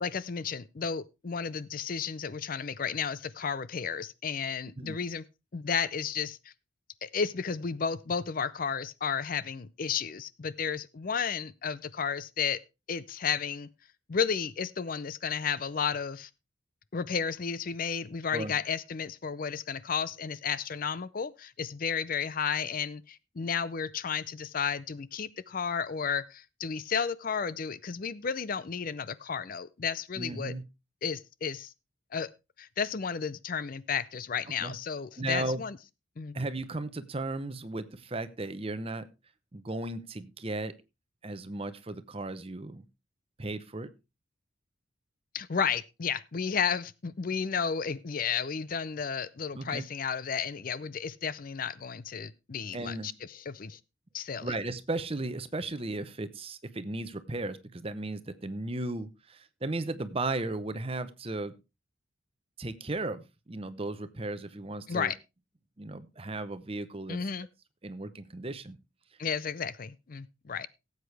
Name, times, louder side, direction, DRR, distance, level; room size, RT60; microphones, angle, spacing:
voice 1, 0.0-5.2 5.5-6.4 7.0-12.6 12.9-13.7 14.1-16.3 16.9-30.5 31.0-31.7 32.1-32.3 32.6-35.8 36.2-36.4 45.3-53.8 54.1-54.5 64.9-65.2 67.1-67.5 69.2-70.7, left 6 dB, 45° left, 0.5 m, -33 dB
voice 2, 30.2-30.6 34.6-34.7 35.2-35.6 36.3-39.1 39.5-40.7 41.2-42.9 43.4-43.9 49.5-49.8 52.7-53.1 54.4-61.5 62.6-65.1 65.8-67.3 67.8-68.8, right 2 dB, 30° right, 0.8 m, -35 dB
17.0 x 8.2 x 3.4 m
head